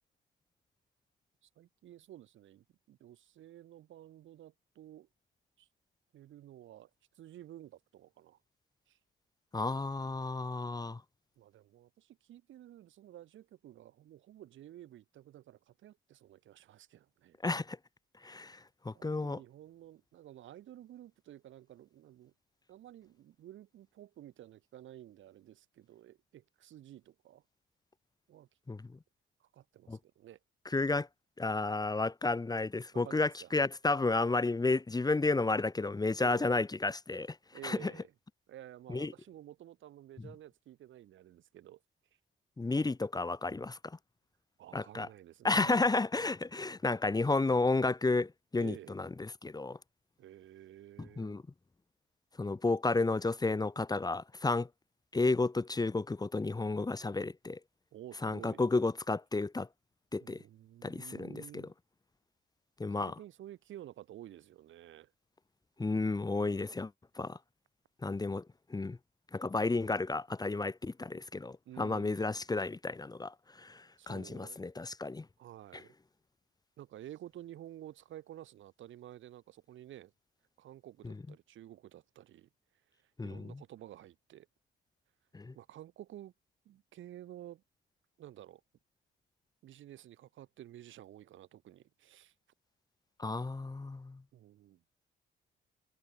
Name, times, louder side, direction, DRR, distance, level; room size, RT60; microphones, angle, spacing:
voice 1, 1.4-5.1 5.6-5.7 6.1-8.4 8.9-9.0 11.4-17.4 18.9-22.3 22.7-27.4 28.3-28.5 29.4-30.4 32.9-33.5 36.2-36.5 37.5-38.1 38.5-41.8 44.6-45.9 48.6-49.0 50.2-51.3 57.9-58.6 60.2-61.7 63.0-65.1 71.7-72.5 74.0-74.6 75.4-75.9 76.8-80.1 80.6-82.5 83.0-84.5 85.5-86.3 86.7-87.6 88.2-88.6 89.6-92.3 94.3-94.8, right 12 dB, 75° right, 3.8 m, -52 dB
voice 2, 9.5-11.0 17.4-17.8 18.2-18.6 18.8-19.4 28.7-28.8 29.9-30.0 30.6-31.1 31.4-37.4 37.6-37.9 38.9-39.1 42.6-44.0 44.7-45.1 45.4-49.8 51.0-51.4 52.4-54.7 55.1-57.6 58.2-59.7 60.1-60.4 60.8-61.6 62.8-63.1 65.8-67.4 68.0-68.4 68.7-69.0 69.3-75.2 81.0-81.1 83.2-83.6 85.3-85.5 93.2-94.2, left 3 dB, 20° left, 1.4 m, -32 dB
cardioid pair, 90°, 20 cm